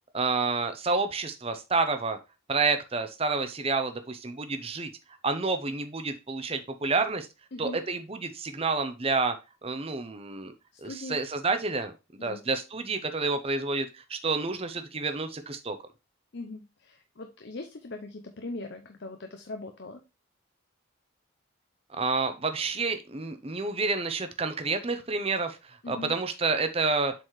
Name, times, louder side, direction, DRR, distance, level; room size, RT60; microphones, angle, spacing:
voice 1, 0.1-2.2 2.5-4.9 5.2-7.3 7.6-9.4 9.6-10.5 10.8-15.8 21.9-27.1, right 3 dB, 30° right, 8 dB, 0.7 m, -29 dB
voice 2, 10.7-11.2 12.2-12.4 16.3-20.0 25.8-26.1, left 2 dB, 55° left, 6 dB, 0.7 m, -40 dB
7.6 x 4.2 x 3.2 m, 0.27 s
head